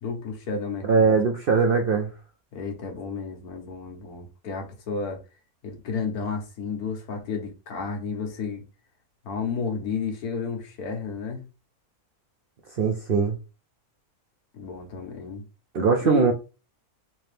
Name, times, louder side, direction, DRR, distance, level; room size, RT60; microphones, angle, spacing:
voice 1, 0.0-1.1 2.5-5.2 5.6-8.6 9.2-11.4 14.5-15.4 16.0-16.3, left 5 dB, 90° left, 1.5 m, -32 dB
voice 2, 0.9-2.1 12.8-13.3 15.7-16.3, right 5 dB, 65° right, 0.5 m, -21 dB
3.4 x 2.8 x 3.3 m
omnidirectional pair, 1.5 m